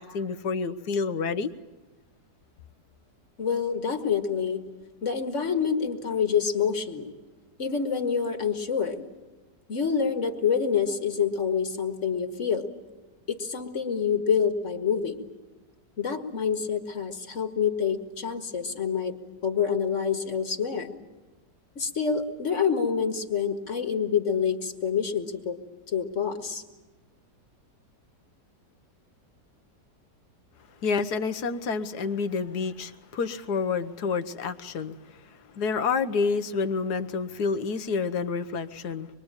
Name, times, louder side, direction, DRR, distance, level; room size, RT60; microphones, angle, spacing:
voice 1, 0.0-1.5 30.8-35.0 35.5-39.1, left 5 dB, 65° left, 11 dB, 1.6 m, -28 dB
voice 2, 3.4-4.6 5.0-7.1 7.6-9.0 9.7-12.7 13.3-15.3 16.0-19.2 19.4-20.9 21.8-25.6 25.9-26.6, left 6 dB, 45° left, 6 dB, 1.9 m, -27 dB
25.0 x 22.5 x 8.9 m, 1.2 s
omnidirectional pair, 1.9 m